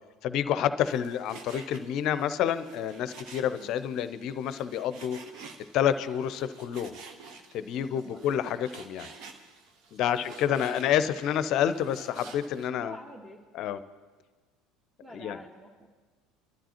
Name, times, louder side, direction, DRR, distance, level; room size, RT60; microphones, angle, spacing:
voice 1, 0.2-5.2 5.7-7.0 7.5-9.1 9.9-13.0 13.5-13.8 15.1-15.4, left 9 dB, 50° left, 13 dB, 0.6 m, -28 dB
Frying (food), 0.8-12.7, right 4 dB, 55° right, 1.1 m, -50 dB
voice 2, 7.7-8.3 10.0-10.2 10.5-10.7 12.8-13.4 15.0-15.9, equal, 10° right, -1 dB, 1.3 m, -47 dB
24.5 x 12.5 x 2.9 m, 1.4 s
figure-of-eight pair, 65°, 0 cm